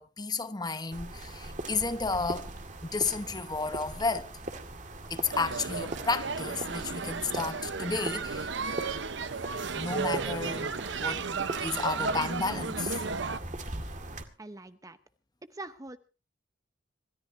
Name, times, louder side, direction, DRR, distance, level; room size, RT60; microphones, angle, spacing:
voice 1, 0.0-2.5 2.8-4.3 5.1-8.5 9.7-11.3 11.6-13.0, left 4 dB, 20° left, 1.0 m, -32 dB
sound 1, 0.9-14.2, right 2 dB, 40° right, 2.0 m, -41 dB
sound 2, 5.3-13.4, right 5 dB, 65° right, 0.9 m, -34 dB
voice 2, 14.4-15.0 15.5-16.0, right 2 dB, 20° right, 0.9 m, -43 dB
26.5 x 14.0 x 2.7 m
head